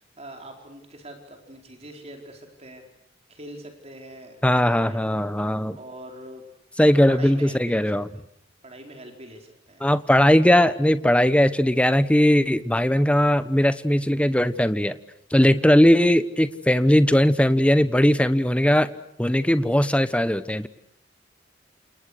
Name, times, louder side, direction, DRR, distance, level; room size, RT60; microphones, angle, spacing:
voice 1, 0.0-2.8 3.3-4.5 4.9-5.0 5.7-6.4 6.8-7.9 8.6-9.9 15.3-15.5, right 1 dB, 35° right, 3 dB, 4.6 m, -43 dB
voice 2, 4.4-5.8 6.8-8.1 9.8-15.0 15.3-18.9 19.2-20.7, equal, 5° left, 12 dB, 1.1 m, -19 dB
29.0 x 28.5 x 6.7 m, 0.71 s
head